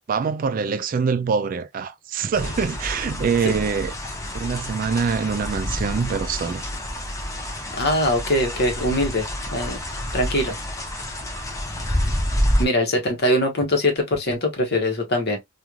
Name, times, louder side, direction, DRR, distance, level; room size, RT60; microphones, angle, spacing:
voice 1, 0.1-3.9 4.3-6.6, right 5 dB, 45° right, 0.3 m, -24 dB
sound 1, 2.3-12.7, left 1 dB, 15° left, 0.6 m, -28 dB
voice 2, 7.8-9.8 10.1-10.5 12.6-15.4, left 1 dB, 55° left, 1.1 m, -22 dB
3.0 x 2.5 x 2.3 m
head